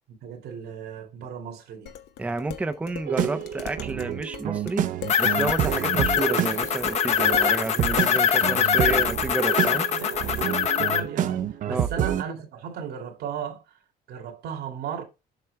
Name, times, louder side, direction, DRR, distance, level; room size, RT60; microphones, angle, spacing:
voice 1, 0.1-1.9 9.9-13.8 14.1-15.0, right 7 dB, 90° right, 2.4 m, -36 dB
Dishes pots and pans, 1.9-8.2, left 9 dB, 85° left, 1.0 m, -40 dB
voice 2, 2.2-4.8 5.2-9.9 11.7-11.9, right 3 dB, 10° right, 0.4 m, -30 dB
sound 1, 3.1-12.2, right 10 dB, 55° right, 0.6 m, -28 dB
sound 2, 5.1-11.0, left 8 dB, 40° left, 0.8 m, -23 dB
7.8 x 5.9 x 3.3 m
cardioid pair, 170°, 16 cm